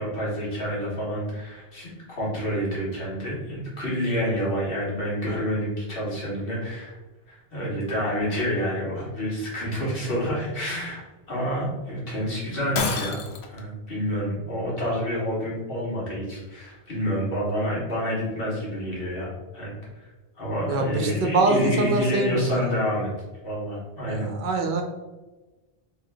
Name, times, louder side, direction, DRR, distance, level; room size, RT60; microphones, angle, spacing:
voice 1, 0.0-1.9 2.2-7.0 7.3-19.7 20.4-23.1 23.4-24.3, equal, 65° left, -6 dB, 1.7 m, -28 dB
Shatter, 12.7-13.6, left 5 dB, 85° left, 0.9 m, -28 dB
voice 2, 20.7-22.7 24.1-24.8, right 3 dB, 55° right, 2 dB, 0.8 m, -24 dB
3.6 x 3.2 x 3.4 m, 1.2 s
omnidirectional pair, 1.0 m